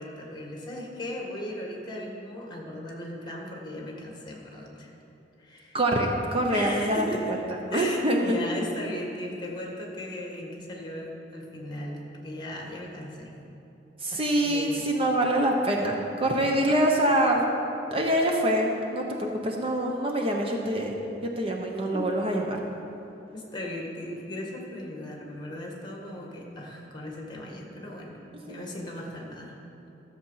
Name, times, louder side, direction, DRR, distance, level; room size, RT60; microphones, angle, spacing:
voice 1, 0.0-4.9 5.4-5.8 6.5-7.4 7.7-13.3 14.1-14.9 21.9-22.1 23.3-28.2 28.5-29.6, left 1 dB, 25° left, -1 dB, 1.7 m, -37 dB
voice 2, 5.7-7.0 7.7-8.4 14.0-17.4 17.9-21.0 21.2-22.6 28.5-28.6, right 1 dB, 30° right, 1 dB, 0.9 m, -25 dB
13.5 x 7.2 x 5.6 m, 2.9 s
head